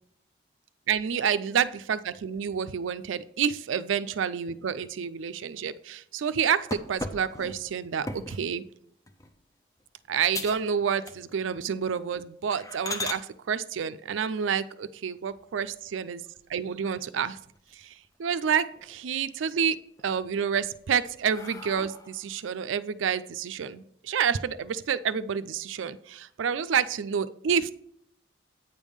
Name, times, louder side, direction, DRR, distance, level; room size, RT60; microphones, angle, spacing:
voice 1, 0.9-8.6 10.1-16.2 16.5-17.4 17.8-17.9 18.2-19.8 20.0-27.7, right 7 dB, 85° right, 14 dB, 0.4 m, -29 dB
sound 1, 6.7-8.5 9.1-9.4 9.8-9.9 10.3-10.7 11.0-11.5 11.9-12.0 12.5-13.2 15.2-15.9 16.4-16.5 16.9-17.0 17.3-18.1 18.4-19.0 19.4-20.0 20.6-22.3, left 2 dB, 15° left, 0.5 m, -38 dB
8.9 x 3.6 x 6.3 m, 0.73 s
head